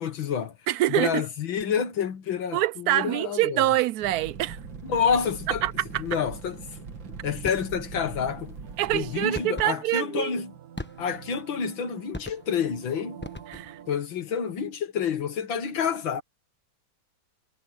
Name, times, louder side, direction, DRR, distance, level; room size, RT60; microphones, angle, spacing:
voice 1, 0.0-0.6 0.9-3.6 4.8-5.6 6.0-6.9 7.2-8.6 8.9-10.6 11.0-13.2 13.9-16.2, left 7 dB, 75° left, 2.4 m, -28 dB
voice 2, 0.7-1.2 2.5-4.6 5.6-6.0 8.8-10.3 13.5-13.8, right 14 dB, 85° right, 0.8 m, -25 dB
Fire, 4.0-9.3, right 5 dB, 70° right, 2.8 m, -41 dB
sound 1, 7.4-7.7 9.3-9.8 10.8-11.3 12.1-12.6 13.2-13.8, left 1 dB, 10° left, 0.7 m, -38 dB
sound 2, 8.6-13.9, right 9 dB, 50° right, 1.8 m, -47 dB
omnidirectional pair, 2.2 m